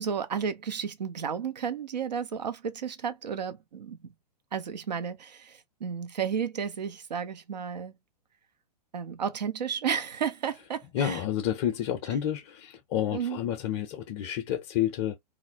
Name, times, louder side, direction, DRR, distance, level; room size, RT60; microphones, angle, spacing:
voice 1, 0.0-4.0 4.5-7.9 8.9-11.2 13.1-13.4, right 7 dB, 80° right, 0.5 m, -32 dB
voice 2, 10.9-15.2, left 10 dB, 40° left, 0.4 m, -30 dB
2.4 x 2.0 x 2.6 m
figure-of-eight pair, 110°, 21 cm